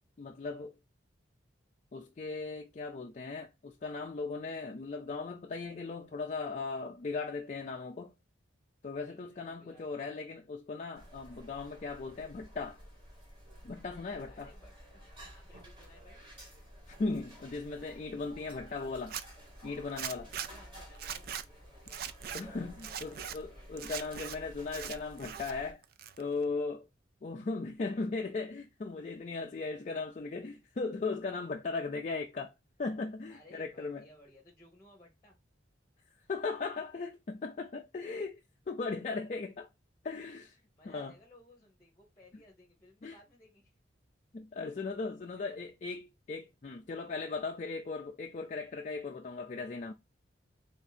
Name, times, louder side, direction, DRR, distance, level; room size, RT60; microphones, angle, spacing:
voice 1, 0.2-0.7 1.9-8.1 8.8-12.8 13.6-14.5 16.9-19.2 19.6-20.3 22.3-25.8 26.2-26.9 27.2-32.5 32.8-34.0 36.3-39.7 40.0-40.6 40.9-41.1 43.0-43.2 44.3-49.9, left 4 dB, 40° left, 0.4 m, -38 dB
voice 2, 9.0-10.2 14.3-16.2 20.0-22.0 22.5-23.9 33.3-35.4 40.6-43.8 45.4-45.6, left 1 dB, 15° left, 1.0 m, -60 dB
sound 1, 10.9-25.7, equal, 25° right, 1.5 m, -52 dB
Zipper (clothing), 19.0-19.2 20.0-20.5 20.9-21.4 21.9-22.4 22.8-23.4 23.8-24.3 24.7-25.5 25.8-26.4, right 9 dB, 50° right, 0.4 m, -40 dB
3.4 x 2.7 x 4.0 m
head